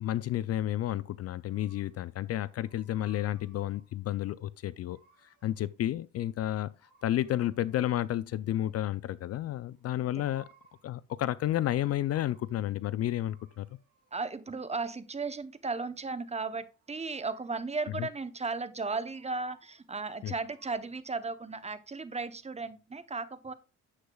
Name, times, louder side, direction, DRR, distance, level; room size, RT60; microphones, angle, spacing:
voice 1, 0.0-5.0 5.4-6.7 7.0-10.5 10.8-13.7 18.0-18.1 20.2-20.3, left 13 dB, 55° left, 0.4 m, -31 dB
sound 1, 1.5-2.0 2.3-4.0 4.6-5.8 6.8-8.1 9.7-10.9 11.4-12.7 13.1-14.4 16.3-17.9 18.7-19.9 20.4-20.8, right 4 dB, 85° right, 2.1 m, -64 dB
voice 2, 14.1-23.5, right 4 dB, 20° right, 0.8 m, -35 dB
9.7 x 7.9 x 2.3 m
cardioid pair, 90°, 30 cm